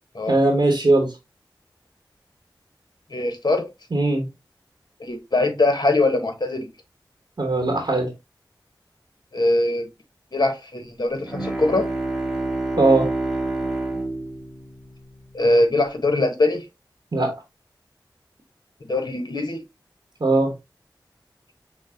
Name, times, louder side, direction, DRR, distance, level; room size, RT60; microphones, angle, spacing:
voice 1, 0.3-1.1 3.9-4.3 7.4-8.1 12.8-13.1 17.1-17.3 20.2-20.5, right 2 dB, 65° right, 1.0 m, -19 dB
voice 2, 3.1-3.7 5.0-6.7 9.3-9.9 10.3-11.9 15.3-16.7 18.9-19.6, left 2 dB, 60° left, 1.0 m, -22 dB
Bowed string instrument, 11.2-15.7, right 2 dB, ahead, 1.6 m, -28 dB
6.2 x 2.1 x 2.7 m
wide cardioid pair, 40°, 8 cm